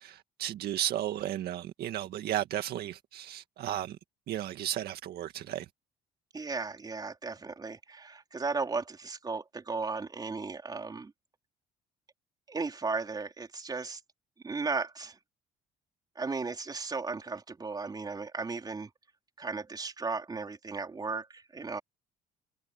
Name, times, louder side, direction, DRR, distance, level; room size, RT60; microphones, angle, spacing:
voice 1, 0.0-4.0 4.3-5.7, right 12 dB, 70° right, 1.8 m, -34 dB
voice 2, 6.3-11.1 12.5-14.0 14.4-15.2 16.2-18.9 19.4-21.8, right 4 dB, 25° right, 4.4 m, -35 dB
cardioid pair, 110°, 17 cm